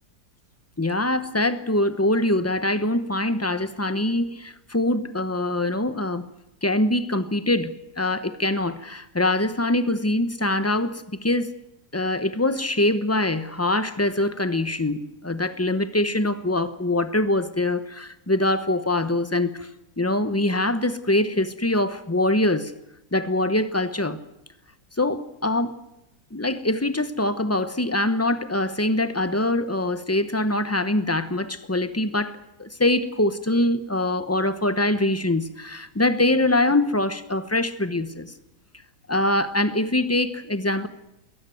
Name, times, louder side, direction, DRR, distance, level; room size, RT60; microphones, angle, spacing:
voice 1, 0.8-6.2 6.6-11.5 11.9-19.7 20.0-22.7 23.1-24.2 25.0-25.7 26.3-38.3 39.1-40.9, left 1 dB, 10° left, 12 dB, 0.7 m, -23 dB
22.5 x 18.5 x 7.8 m, 0.89 s
omnidirectional pair, 1.9 m